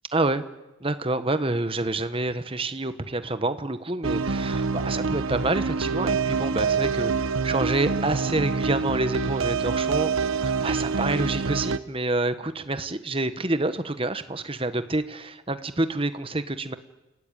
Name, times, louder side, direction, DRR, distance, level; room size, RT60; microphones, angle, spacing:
voice 1, 0.1-0.4 0.8-16.7, right 2 dB, 25° right, 11 dB, 1.2 m, -27 dB
sound 1, 4.0-11.8, right 5 dB, 70° right, 1.0 m, -26 dB
30.0 x 17.5 x 9.1 m, 1.0 s
head